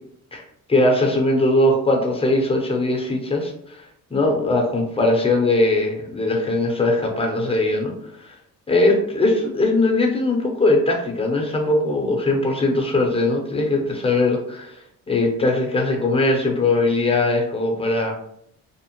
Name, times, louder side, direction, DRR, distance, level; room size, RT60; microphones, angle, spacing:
voice 1, 0.7-3.8 4.1-7.9 8.7-14.7 15.1-18.1, left 2 dB, 20° left, 1 dB, 0.7 m, -20 dB
2.8 x 2.0 x 2.9 m, 0.73 s
cardioid pair, 90°, 30 cm